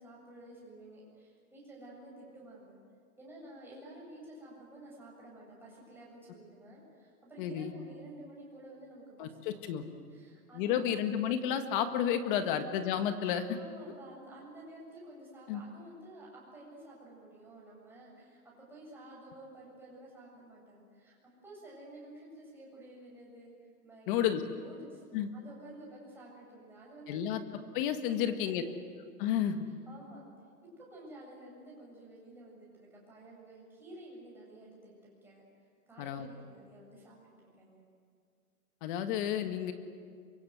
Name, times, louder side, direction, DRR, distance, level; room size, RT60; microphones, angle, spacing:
voice 1, 0.0-2.7 3.2-9.8 10.1-10.9 12.3-12.5 13.2-21.2 21.4-23.5 23.8-24.2 24.6-25.0 25.3-27.2 28.5-28.6 29.7-30.2 30.8-37.8, right 1 dB, 5° right, -5 dB, 7.8 m, -51 dB
voice 2, 7.4-7.7 9.2-9.8 10.5-13.6 15.5-15.6 24.1-24.4 25.1-25.3 27.1-27.4 27.7-28.6 29.2-29.7 36.0-36.3 38.8-39.7, left 9 dB, 35° left, 8 dB, 1.7 m, -31 dB
28.0 x 24.5 x 8.1 m, 2.1 s
hypercardioid pair, 155°, 46 cm